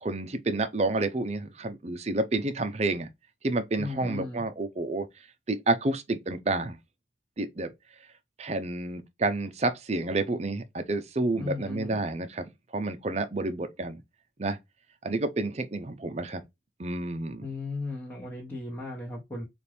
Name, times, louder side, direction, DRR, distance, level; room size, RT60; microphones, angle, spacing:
voice 1, 0.0-3.1 3.4-5.1 5.5-6.8 7.4-7.7 8.4-14.0 14.4-14.6 15.0-16.4 16.8-17.4, right 2 dB, 35° right, 0.5 m, -29 dB
voice 2, 3.8-4.4 11.3-12.0 17.4-19.5, left 3 dB, 10° left, 1.1 m, -36 dB
4.3 x 2.5 x 3.3 m
head